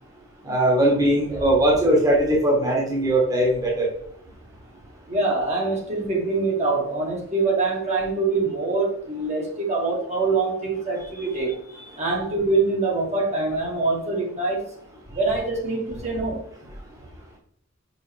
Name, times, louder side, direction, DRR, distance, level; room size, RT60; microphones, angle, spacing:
voice 1, 0.4-3.9 11.7-11.9, right 1 dB, 20° right, -2 dB, 1.4 m, -20 dB
voice 2, 5.1-11.5 12.0-14.6 15.1-16.4, right 3 dB, 35° right, -2 dB, 1.5 m, -24 dB
5.6 x 5.4 x 3.4 m, 0.68 s
head